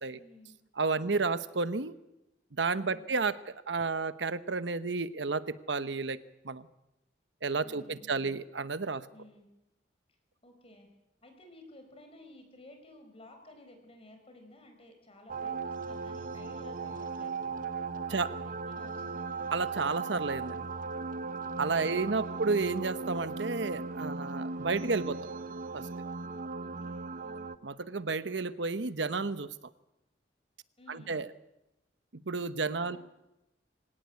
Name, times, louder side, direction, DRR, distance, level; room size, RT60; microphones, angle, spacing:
voice 1, 0.1-0.5 2.8-3.2 7.6-8.4 9.1-9.5 10.4-10.9 11.2-17.5 18.1-19.3 21.7-22.5 26.6-27.5 30.8-31.2 32.8-33.0, left 1 dB, 35° left, 4 dB, 4.6 m, -55 dB
voice 2, 0.8-2.0 2.6-3.4 3.7-6.2 6.4-6.7 7.4-9.0 18.1-18.3 19.5-20.7 21.6-25.2 25.7-25.9 27.6-29.5 30.9-31.3 32.3-33.0, right 4 dB, 80° right, 13 dB, 1.0 m, -31 dB
sound 1, 15.3-27.6, right 4 dB, 50° right, 0.8 m, -37 dB
25.0 x 18.0 x 8.4 m, 0.93 s
head